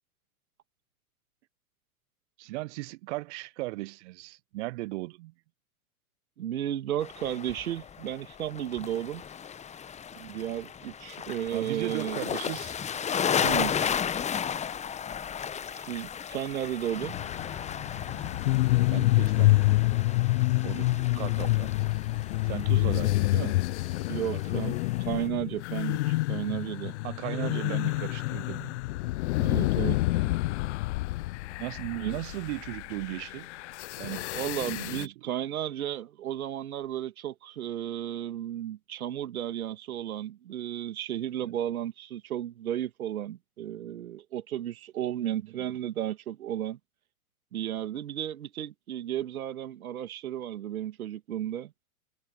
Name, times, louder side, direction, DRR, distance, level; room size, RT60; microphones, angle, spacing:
voice 1, 2.4-5.3 11.5-12.8 18.9-19.7 20.6-21.7 22.4-23.6 24.3-24.8 27.0-28.8 30.3-30.4 31.6-33.5 34.0-34.3 34.6-35.1 41.4-41.6 45.2-45.7, right 20 dB, 50° right, 0.6 m, -37 dB
voice 2, 6.4-9.2 10.1-12.2 13.4-13.8 15.7-17.2 22.9-23.1 24.1-24.8 25.1-27.0 27.3-27.8 29.4-30.0 32.0-32.2 34.3-46.8 47.5-51.7, right 11 dB, 70° right, 2.3 m, -34 dB
sound 1, 7.0-25.3, left 8 dB, 15° left, 1.0 m, -35 dB
sound 2, 17.1-35.0, left 19 dB, 55° left, 0.5 m, -28 dB
Organ, 26.3-33.7, right 4 dB, 10° right, 4.1 m, -60 dB
hypercardioid pair, 105°, 44 cm